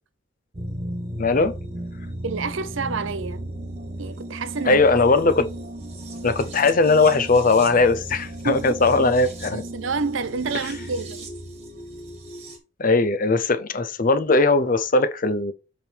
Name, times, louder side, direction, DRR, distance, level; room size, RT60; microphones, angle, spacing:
sound 1, 0.5-12.6, right 1 dB, 30° right, 1.6 m, -35 dB
voice 1, 1.2-1.5 4.7-5.5 6.2-9.6 12.8-15.5, left 3 dB, 40° left, 0.7 m, -19 dB
voice 2, 2.2-3.4 4.0-4.9 8.4-8.8 9.5-11.3, right 4 dB, 70° right, 0.6 m, -29 dB
7.7 x 3.5 x 4.6 m
head